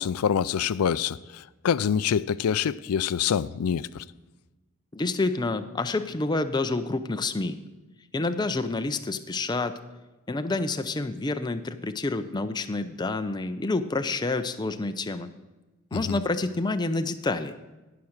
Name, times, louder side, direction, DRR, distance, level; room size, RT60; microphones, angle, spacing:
voice 1, 0.0-4.0 15.9-16.2, left 8 dB, 85° left, 0.4 m, -26 dB
voice 2, 4.9-7.6 8.1-9.8 10.3-15.3 15.9-17.5, left 3 dB, 20° left, 0.5 m, -28 dB
16.5 x 5.9 x 6.5 m
head